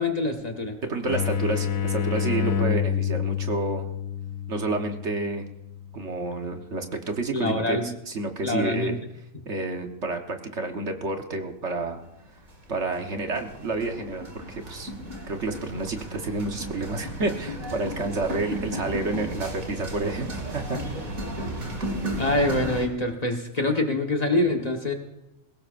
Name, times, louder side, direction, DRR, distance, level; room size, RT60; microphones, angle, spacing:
voice 1, 0.0-0.8 7.3-7.9 8.4-9.0 22.2-24.9, left 2 dB, 30° left, 2 dB, 1.4 m, -25 dB
voice 2, 0.9-3.9 4.5-5.5 5.9-9.0 9.4-12.0 12.7-14.9 15.3-20.8, right 3 dB, 60° right, 4 dB, 1.5 m, -29 dB
sound 1, 1.1-6.6, left 8 dB, 85° left, 1.2 m, -28 dB
sound 2, 11.8-12.1 12.4-22.9, equal, 85° right, 2.9 m, -34 dB
21.5 x 17.5 x 2.6 m, 0.90 s
omnidirectional pair, 1.4 m